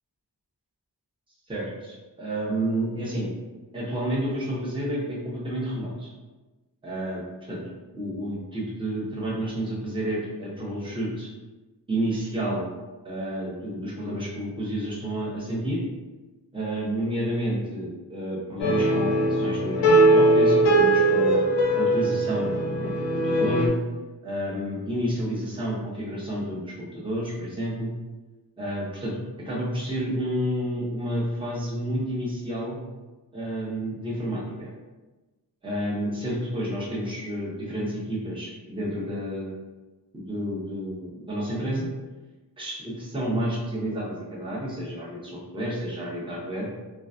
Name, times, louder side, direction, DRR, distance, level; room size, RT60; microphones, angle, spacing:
voice 1, 1.5-3.3 3.7-6.1 6.8-7.2 7.5-7.6 7.9-11.3 11.9-12.7 13.0-15.8 16.5-21.4 21.7-23.7 24.2-27.9 28.6-32.8 33.3-34.7 35.6-39.6 40.1-41.9 42.6-46.7, right 1 dB, 10° right, -6 dB, 0.7 m, -30 dB
sound 1, 18.6-23.7, right 1 dB, 70° left, 0.6 m, -20 dB
2.3 x 2.3 x 2.4 m, 1.2 s
wide cardioid pair, 50°, 44 cm